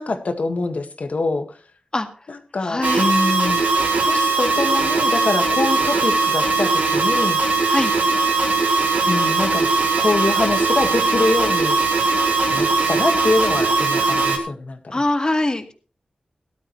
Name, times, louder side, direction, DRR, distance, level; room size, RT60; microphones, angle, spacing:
voice 1, 0.0-1.4 2.3-3.7 4.0-7.4 9.1-9.7 10.0-11.8 12.5-15.0, left 3 dB, 65° left, 7 dB, 1.8 m, -24 dB
voice 2, 2.6-3.1 7.7-7.9 14.9-15.7, left 2 dB, 30° left, 7 dB, 1.9 m, -22 dB
sound 1, 2.8-14.4, right 3 dB, 80° right, 3.7 m, -19 dB
17.0 x 12.5 x 3.2 m, 0.36 s
wide cardioid pair, 65°, 3 cm